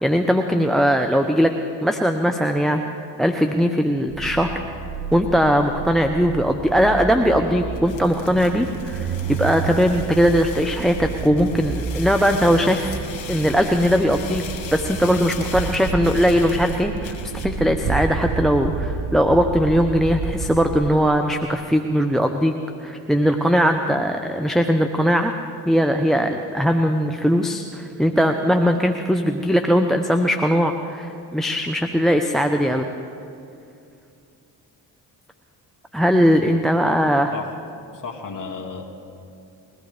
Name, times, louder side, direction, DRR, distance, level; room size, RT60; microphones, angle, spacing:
voice 1, 0.0-1.5 1.8-2.9 3.2-4.6 5.1-13.0 13.3-14.4 14.7-22.5 22.8-25.3 25.7-32.9 35.9-37.3, equal, ahead, 5 dB, 0.9 m, -20 dB
sound 1, 4.1-20.9, right 5 dB, 45° right, 1.0 m, -30 dB
sound 2, 7.7-17.6, left 7 dB, 60° left, 1.9 m, -39 dB
voice 2, 37.9-38.8, left 5 dB, 40° left, 1 dB, 2.1 m, -33 dB
21.5 x 14.5 x 3.5 m, 2.5 s
hypercardioid pair, 45°, 50 cm